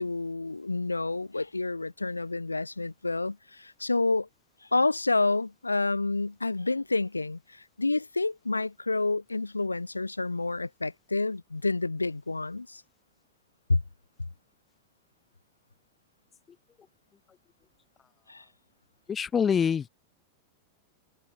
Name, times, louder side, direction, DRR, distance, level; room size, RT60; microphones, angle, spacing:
voice 1, 0.0-4.3 4.7-12.8 13.7-13.8 18.3-18.4, left 3 dB, 80° left, 4.0 m, -29 dB
voice 2, 19.1-19.9, left 7 dB, 20° left, 1.7 m, -25 dB
figure-of-eight pair, 90°, 0 cm